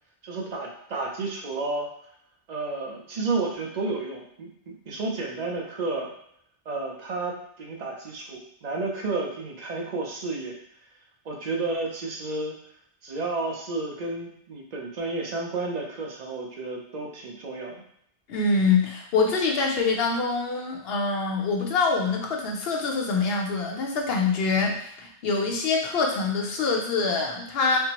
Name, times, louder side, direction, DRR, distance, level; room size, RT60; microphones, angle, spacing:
voice 1, 0.2-1.9 2.5-6.1 6.7-10.5 11.2-12.5 13.0-17.8, right 3 dB, 50° right, 0 dB, 0.6 m, -31 dB
voice 2, 18.3-27.8, left 4 dB, 65° left, 0 dB, 0.8 m, -25 dB
3.5 x 2.0 x 2.9 m, 0.70 s
omnidirectional pair, 1.1 m